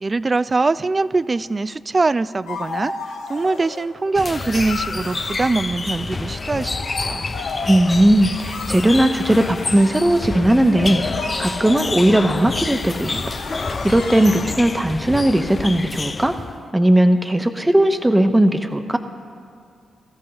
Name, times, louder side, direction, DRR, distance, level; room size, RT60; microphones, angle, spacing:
voice 1, 0.0-2.9 3.3-7.3, right 3 dB, 35° right, 17 dB, 0.4 m, -22 dB
sound 1, 2.5-3.9 4.3-5.7 6.2-14.4, left 4 dB, 90° left, 1.4 m, -33 dB
sound 2, 4.1-16.6, left 3 dB, 35° left, 0.4 m, -28 dB
voice 2, 7.7-13.3 13.8-16.4 16.7-19.0, right 1 dB, 15° right, 7 dB, 0.9 m, -17 dB
23.5 x 14.0 x 2.9 m, 2.3 s
hypercardioid pair, 40°, 0 cm